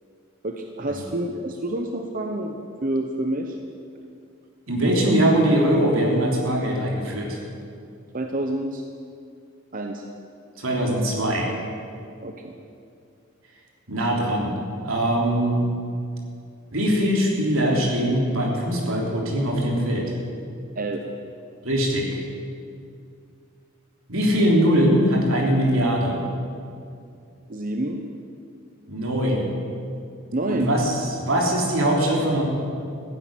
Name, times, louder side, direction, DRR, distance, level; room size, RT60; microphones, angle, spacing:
voice 1, 0.4-3.6 8.1-8.8 9.7-10.0 12.2-12.5 20.7-21.0 27.5-28.0 30.3-30.8, right 1 dB, 40° right, 4 dB, 0.9 m, -28 dB
voice 2, 4.7-7.4 10.6-11.5 13.9-14.5 14.8-15.6 16.7-20.1 21.6-22.1 24.1-26.2 28.9-29.5 30.5-32.4, equal, 80° right, -1 dB, 3.5 m, -21 dB
15.5 x 10.0 x 8.9 m, 2.4 s
head